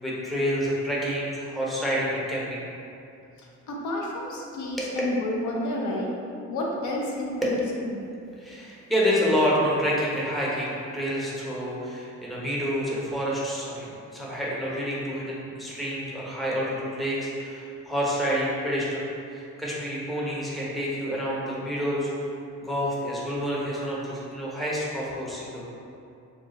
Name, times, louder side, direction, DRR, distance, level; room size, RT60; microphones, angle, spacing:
voice 1, 0.0-2.7 4.8-4.9 7.4-7.7 8.4-19.0 19.3-22.1 22.6-25.7, equal, ahead, -7 dB, 0.7 m, -28 dB
voice 2, 3.4-6.1 6.5-7.9, left 1 dB, 75° left, -2 dB, 0.6 m, -30 dB
2.4 x 2.3 x 3.9 m, 2.6 s
cardioid pair, 90°, 30 cm